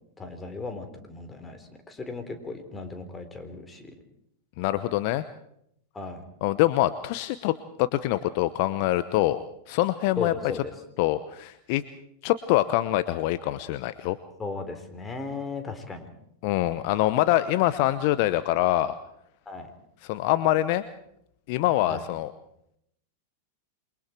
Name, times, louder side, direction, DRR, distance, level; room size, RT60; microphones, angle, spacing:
voice 1, 0.2-3.9 5.9-6.3 10.2-10.7 14.4-16.1 19.5-19.7 21.9-22.0, left 3 dB, 15° left, 7 dB, 4.0 m, -36 dB
voice 2, 4.6-5.2 6.4-10.3 11.0-11.8 12.2-14.2 16.4-19.0 20.0-20.8 21.5-22.3, left 15 dB, 50° left, 13 dB, 0.9 m, -24 dB
28.0 x 23.5 x 4.6 m, 0.75 s
figure-of-eight pair, 95°, 0 cm